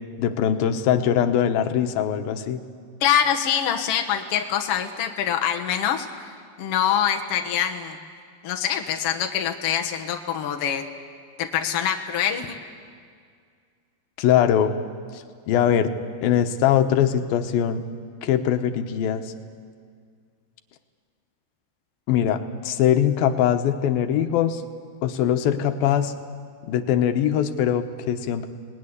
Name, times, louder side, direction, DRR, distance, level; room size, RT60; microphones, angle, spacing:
voice 1, 0.2-2.6 14.2-14.7 15.1-15.9 16.2-17.8 18.2-19.3 22.1-24.6 25.0-26.1 26.6-28.5, left 9 dB, 90° left, 8 dB, 2.8 m, -22 dB
voice 2, 3.0-8.0 8.4-10.8 11.4-12.6, left 9 dB, 55° left, 4 dB, 1.8 m, -24 dB
24.5 x 19.5 x 9.9 m, 2.1 s
omnidirectional pair, 4.2 m